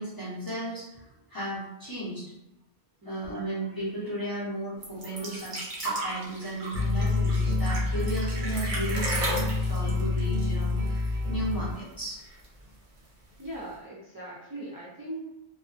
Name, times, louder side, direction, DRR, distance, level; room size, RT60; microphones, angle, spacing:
voice 1, 0.0-2.2 3.0-9.4 9.7-12.2, right 1 dB, 20° left, -9 dB, 0.8 m, -35 dB
voice 2, 3.0-3.5 13.4-15.2, right 1 dB, 30° right, -9 dB, 0.4 m, -40 dB
sound 1, 4.8-11.2 11.5-11.6 11.9-12.6 13.5-13.6, right 1 dB, 50° right, 0.8 m, -34 dB
sound 2, 6.7-11.7, left 3 dB, 90° right, 0.9 m, -28 dB
2.4 x 2.1 x 2.4 m, 0.89 s
omnidirectional pair, 1.1 m